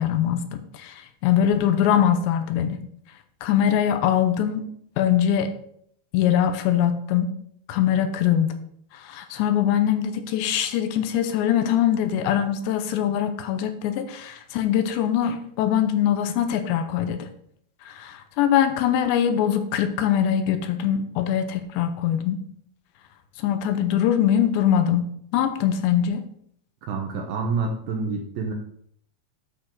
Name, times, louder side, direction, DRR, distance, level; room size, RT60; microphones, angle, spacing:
voice 1, 0.0-2.8 3.4-4.6 5.0-5.5 6.1-7.3 7.7-8.6 8.9-17.3 17.9-22.4 23.4-26.2, left 9 dB, 90° left, 8 dB, 2.9 m, -22 dB
voice 2, 26.9-28.5, right 4 dB, 75° right, 2 dB, 2.2 m, -27 dB
8.8 x 4.0 x 6.4 m, 0.67 s
omnidirectional pair, 5.1 m